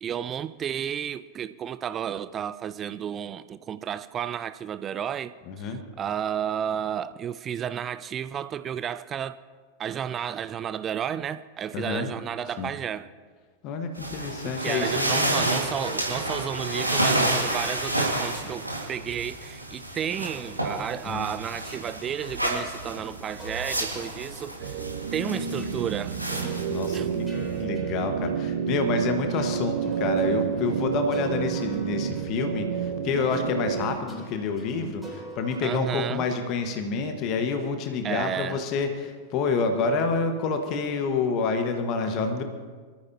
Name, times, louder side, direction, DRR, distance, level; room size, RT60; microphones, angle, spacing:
voice 1, 0.0-9.4 9.8-13.1 14.6-24.8 25.1-26.2 26.9-27.1 35.6-36.3 38.0-38.6, right 9 dB, 25° right, 0.4 m, -32 dB
voice 2, 5.5-5.8 11.7-12.1 12.6-12.7 13.6-15.4 21.0-21.3 26.7-27.3 27.6-42.4, left 4 dB, 40° left, 1.5 m, -28 dB
sound 1, 14.0-27.6, right 1 dB, 85° right, 2.0 m, -30 dB
sound 2, 20.0-28.7 29.2-37.0, right 1 dB, 5° right, 3.7 m, -48 dB
sound 3, 24.6-34.0, right 7 dB, 55° right, 0.9 m, -29 dB
24.5 x 13.5 x 2.9 m
figure-of-eight pair, 90°, 0 cm